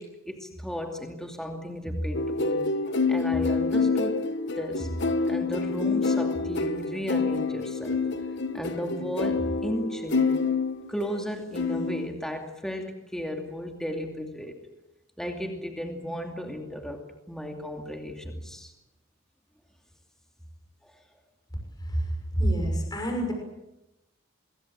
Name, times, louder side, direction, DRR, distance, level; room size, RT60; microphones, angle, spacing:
voice 1, 0.0-2.7 3.1-8.0 8.5-10.3 10.9-14.6 15.2-18.7, equal, ahead, 3 dB, 2.6 m, -34 dB
sound 1, 2.1-11.2 11.6-12.1, left 4 dB, 55° left, 1.2 m, -27 dB
voice 2, 21.8-23.3, right 1 dB, 20° left, 2 dB, 6.1 m, -27 dB
25.5 x 23.5 x 7.6 m, 0.95 s
head